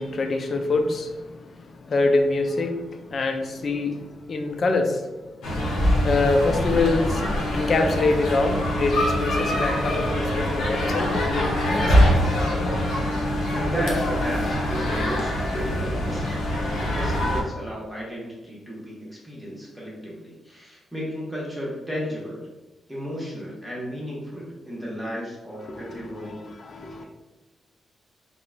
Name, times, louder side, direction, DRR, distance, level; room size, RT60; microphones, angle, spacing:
voice 1, 0.0-5.6 6.0-12.2 25.6-27.0, left 3 dB, 50° left, 0.3 m, -26 dB
sound 1, 5.4-17.4, equal, 90° left, 0.6 m, -24 dB
voice 2, 13.5-16.6 16.9-22.5 22.9-26.4, equal, 5° right, 1.0 m, -33 dB
3.7 x 2.0 x 2.3 m
cardioid pair, 105°, 0 cm